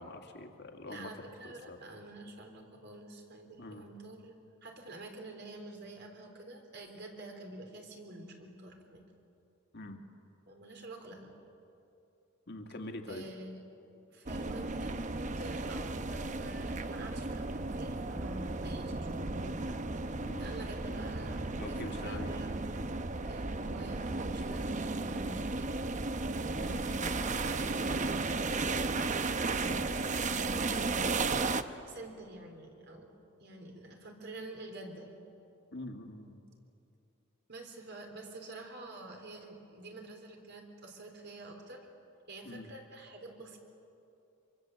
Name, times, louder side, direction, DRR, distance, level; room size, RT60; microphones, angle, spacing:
voice 1, 0.0-1.8 3.6-3.8 9.7-10.0 12.5-13.2 20.2-20.5 21.6-22.3 26.6-26.8 35.7-36.4 42.4-42.7, left 2 dB, 55° left, 4 dB, 2.2 m, -44 dB
voice 2, 0.9-4.4 4.6-9.0 10.5-11.3 13.1-13.6 14.1-19.8 20.4-22.6 23.2-25.8 27.4-31.1 31.8-33.1 33.4-35.2 37.5-41.9 42.3-43.6, right 2 dB, 55° right, 2 dB, 3.7 m, -48 dB
sound 1, 14.3-31.6, right 3 dB, 35° right, 0.8 m, -34 dB
25.5 x 24.0 x 7.9 m, 2.7 s
head